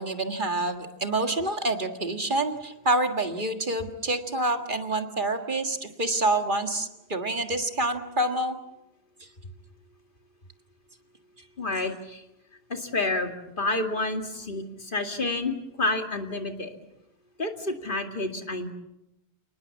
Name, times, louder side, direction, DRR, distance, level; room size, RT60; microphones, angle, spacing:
voice 1, 0.0-8.6, right 2 dB, 50° right, 6 dB, 1.9 m, -27 dB
voice 2, 11.6-12.2 12.7-13.3 13.6-16.7 17.4-18.7, left 2 dB, 50° left, 5 dB, 2.4 m, -29 dB
29.5 x 19.5 x 7.3 m, 0.88 s
omnidirectional pair, 1.1 m